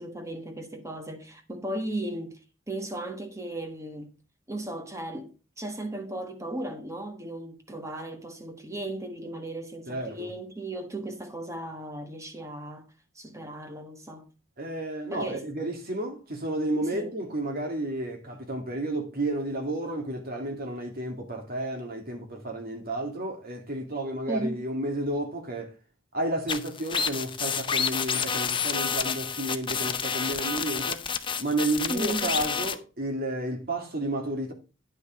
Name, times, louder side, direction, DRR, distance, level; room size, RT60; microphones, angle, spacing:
voice 1, 0.0-4.1 4.5-14.3 15.1-15.5 16.9-17.2 24.3-24.6 31.9-32.3, right 1 dB, 15° right, 1.4 m, -36 dB
voice 2, 9.9-10.3 14.6-25.7 26.1-31.0 31.4-34.5, right 1 dB, 50° right, 2.4 m, -31 dB
sound 1, 26.5-32.8, left 6 dB, 25° left, 0.7 m, -29 dB
10.0 x 5.8 x 4.3 m
head